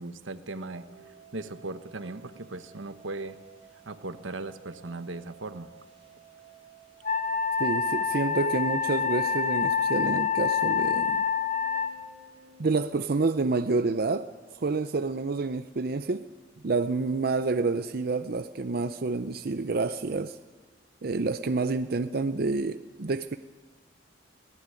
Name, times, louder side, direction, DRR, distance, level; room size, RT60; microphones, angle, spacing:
voice 1, 0.0-3.4 3.9-5.7, right 2 dB, 85° right, 1.2 m, -38 dB
sound 1, 0.7-12.9, right 4 dB, 35° right, 5.6 m, -54 dB
Wind instrument woodwind instrument, 7.0-11.9, left 6 dB, 45° left, 1.3 m, -27 dB
voice 2, 7.6-11.2 12.6-16.2 16.6-20.4 21.0-23.4, right 3 dB, 50° right, 0.6 m, -28 dB
20.5 x 16.5 x 9.7 m
head